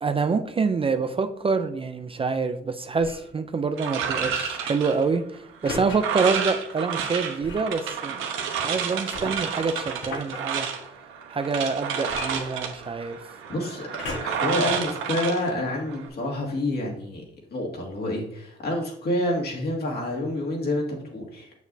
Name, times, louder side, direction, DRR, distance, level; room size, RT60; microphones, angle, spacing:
voice 1, 0.0-8.2 8.5-10.7 11.3-13.2, right 4 dB, 30° right, 9 dB, 0.4 m, -26 dB
sound 1, 2.9-3.3 5.6-6.0 7.4-7.7 9.1-10.4 12.1-13.0 14.0-14.5 15.2-15.3, left 3 dB, 70° left, 1.6 m, -36 dB
sound 2, 3.8-16.1, right 7 dB, 85° right, 1.0 m, -30 dB
voice 2, 13.5-13.9 14.2-21.5, left 1 dB, 55° left, -1 dB, 2.1 m, -28 dB
7.0 x 6.1 x 2.7 m, 0.72 s
cardioid pair, 90°, 20 cm